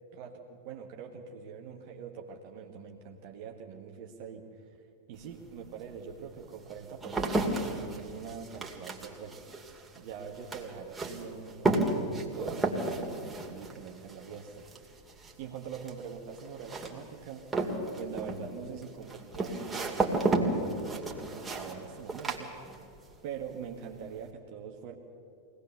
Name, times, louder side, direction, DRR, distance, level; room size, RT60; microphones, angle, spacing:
voice 1, 0.1-4.8 5.1-7.5 8.0-9.4 10.0-14.7 15.4-17.5 18.0-22.8 23.2-24.9, right 7 dB, 45° right, 1 dB, 1.6 m, -43 dB
sound 1, 5.2-5.3 6.0-23.1 23.4-24.0, right 2 dB, 15° right, 2.5 m, -33 dB
23.5 x 18.5 x 6.9 m, 2.6 s
figure-of-eight pair, 90°, 0 cm